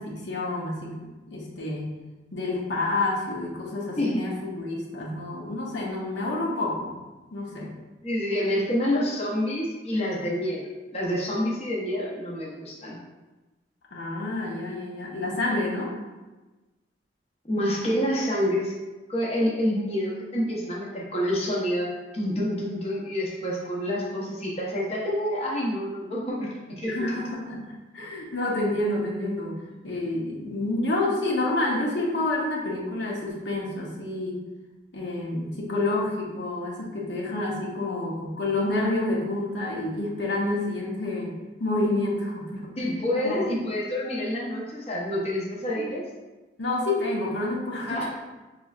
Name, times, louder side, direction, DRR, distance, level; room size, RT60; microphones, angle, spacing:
voice 1, 0.0-2.0 2.3-7.0 7.3-7.7 13.9-16.0 26.9-27.7 27.9-34.4 34.9-41.3 41.6-42.7 43.1-43.5 46.6-48.1, left 2 dB, 75° left, -3 dB, 0.8 m, -28 dB
voice 2, 8.0-13.0 17.5-18.7 19.1-21.9 22.1-26.9 42.8-46.0 47.9-48.1, equal, 35° left, -5 dB, 0.7 m, -27 dB
5.1 x 3.2 x 2.4 m, 1.2 s
head